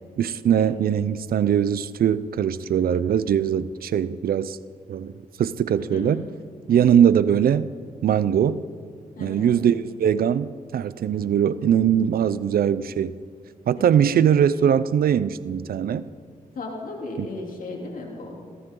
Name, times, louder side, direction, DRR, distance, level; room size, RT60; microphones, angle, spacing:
voice 1, 0.2-4.6 4.9-5.1 5.4-6.2 6.7-7.7 8.0-8.6 9.2-13.1 13.7-16.0 17.2-17.3, right 8 dB, 75° right, 16 dB, 0.5 m, -21 dB
voice 2, 5.8-6.3 6.7-7.0 9.1-9.6 13.8-14.0 16.5-18.4, left 2 dB, 65° left, 0 dB, 3.3 m, -36 dB
21.0 x 16.5 x 3.8 m, 2.2 s
cardioid pair, 65°, 15 cm